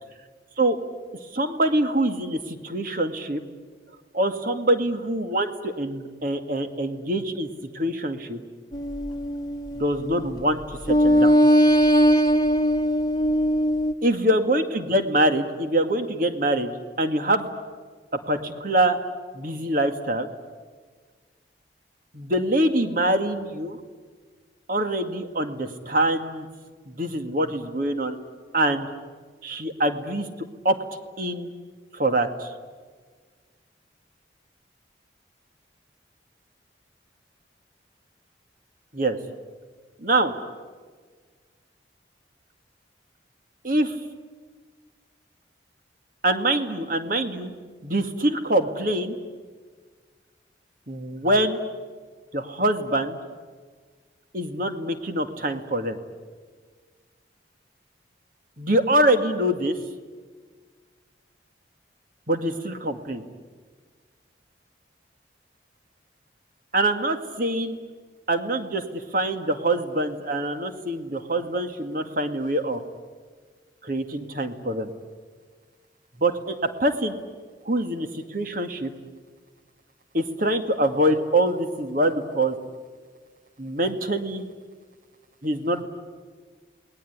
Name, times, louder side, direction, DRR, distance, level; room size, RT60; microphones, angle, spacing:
voice 1, 1.3-3.4 4.1-8.4 9.7-11.4 14.0-16.7 17.0-17.5 18.3-19.0 19.3-20.3 22.1-23.8 24.7-26.5 26.9-28.2 28.5-28.9 29.4-30.3 30.6-30.8 31.2-31.5 31.9-32.5 38.9-39.2 40.0-40.3 43.6-44.0 46.2-47.5 47.8-49.2 50.9-51.6 52.3-53.2 54.3-56.0 58.6-59.8 62.3-63.2 66.7-67.8 68.3-72.8 73.8-74.9 76.2-77.1 77.7-78.9 80.1-82.6 83.6-84.5 85.4-85.8, right 1 dB, 50° right, 7 dB, 2.1 m, -24 dB
sound 1, 8.7-10.4 10.8-13.9, equal, 20° left, 1.4 m, -20 dB
29.0 x 20.5 x 9.6 m, 1.5 s
head